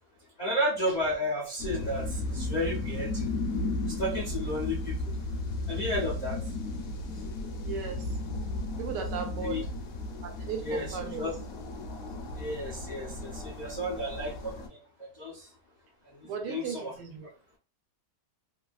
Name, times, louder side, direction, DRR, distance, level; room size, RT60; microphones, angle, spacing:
voice 1, 0.4-3.2 3.8-5.2 5.7-6.4 9.4-9.6 10.6-11.3 12.3-15.5 16.2-16.9, left 1 dB, 85° left, 0.3 m, -33 dB
sound 1, 1.6-14.7, left 2 dB, 70° left, 0.9 m, -35 dB
voice 2, 7.6-8.2 8.8-9.7 10.2-11.3 16.2-17.3, right 7 dB, 80° right, 1.3 m, -36 dB
3.1 x 2.3 x 2.4 m
omnidirectional pair, 1.9 m